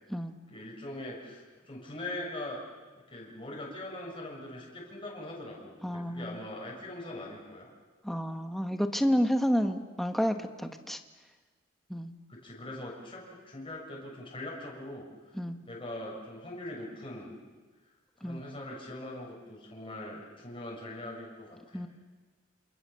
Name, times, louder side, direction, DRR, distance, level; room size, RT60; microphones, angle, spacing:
voice 1, 0.5-2.6 3.1-7.7 12.3-15.0 15.6-17.4 18.2-21.8, left 1 dB, 25° left, -3 dB, 6.7 m, -41 dB
voice 2, 5.8-6.4 8.0-11.0 11.9-12.1 15.4-15.6 18.2-18.4 21.7-21.9, equal, ahead, 6 dB, 1.4 m, -30 dB
28.5 x 28.0 x 7.0 m, 1.4 s
head